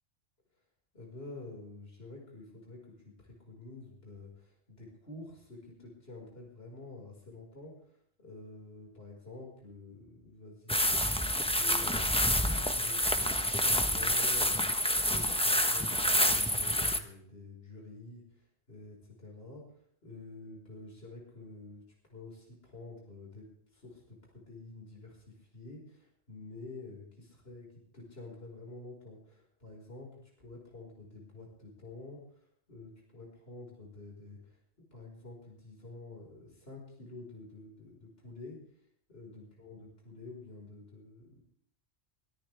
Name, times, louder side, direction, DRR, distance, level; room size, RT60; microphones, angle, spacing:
voice 1, 0.9-7.8 8.2-12.3 12.7-18.4 18.7-21.8 22.1-27.7 27.9-32.2 32.7-34.6 34.9-38.6 39.1-41.4, left 2 dB, 60° left, -1 dB, 5.7 m, -49 dB
sound 1, 10.7-17.0, left 1 dB, 5° left, 1.2 m, -28 dB
23.5 x 13.5 x 3.5 m, 0.63 s
omnidirectional pair, 1.1 m